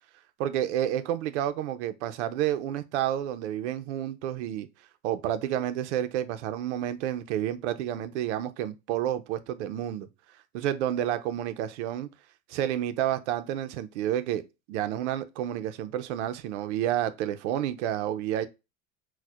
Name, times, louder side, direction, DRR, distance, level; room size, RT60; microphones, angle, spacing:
voice 1, 0.4-4.7 5.0-10.1 10.5-12.1 12.5-14.4 14.7-18.5, right 11 dB, 60° right, 0.5 m, -30 dB
4.2 x 2.1 x 2.3 m
supercardioid pair, 165°, 41 cm